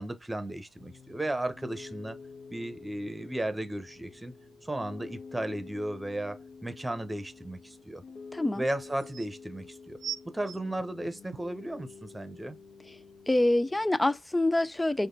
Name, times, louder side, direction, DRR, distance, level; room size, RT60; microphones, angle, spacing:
voice 1, 0.0-2.2 2.5-4.3 4.6-8.0 8.6-10.0 10.2-12.6, right 1 dB, 10° right, 1.0 m, -35 dB
Piano, 0.8-13.9, left 5 dB, 55° left, 1.4 m, -49 dB
voice 2, 8.3-8.6 13.3-15.1, left 1 dB, 10° left, 0.5 m, -26 dB
sound 1, 8.4-8.5 8.8-9.3 10.0-11.6 12.3-12.4, right 9 dB, 60° right, 0.4 m, -40 dB
5.1 x 2.4 x 3.9 m
cardioid pair, 90°, 0 cm